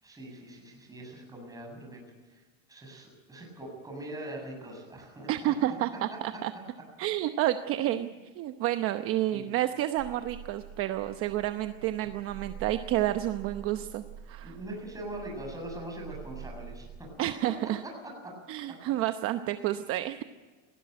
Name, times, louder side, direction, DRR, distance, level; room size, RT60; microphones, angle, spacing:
voice 1, 0.0-2.0 2.3-5.7 6.1-6.2 7.8-8.1 9.3-9.5 14.4-17.1 17.5-17.6 17.8-18.3 18.8-18.9 19.5-19.6, right 1 dB, 10° right, 0 dB, 7.6 m, -42 dB
voice 2, 5.3-6.5 7.0-8.1 8.4-14.5 17.2-17.8 18.5-20.2, right 13 dB, 45° right, 9 dB, 0.9 m, -30 dB
sound 1, 10.0-17.0, right 7 dB, 75° right, 6.2 m, -46 dB
19.0 x 15.5 x 9.2 m, 1.4 s
supercardioid pair, 140°, 31 cm